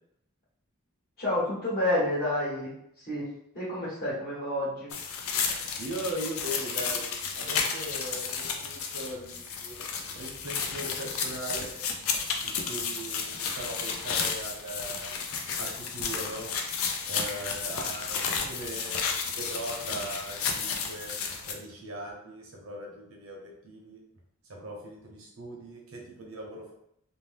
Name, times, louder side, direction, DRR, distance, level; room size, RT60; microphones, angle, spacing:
voice 1, 1.2-2.7 3.0-4.9, left 1 dB, 45° left, -9 dB, 1.2 m, -29 dB
sound 1, 4.9-21.5, left 6 dB, 75° left, 0.4 m, -32 dB
voice 2, 5.8-7.1 7.3-9.8 10.1-11.8 12.4-15.1 15.6-16.5 17.1-18.2 18.5-21.2 21.4-24.0 24.5-26.7, right 1 dB, 70° right, -1 dB, 0.8 m, -39 dB
2.6 x 2.1 x 3.4 m, 0.74 s
head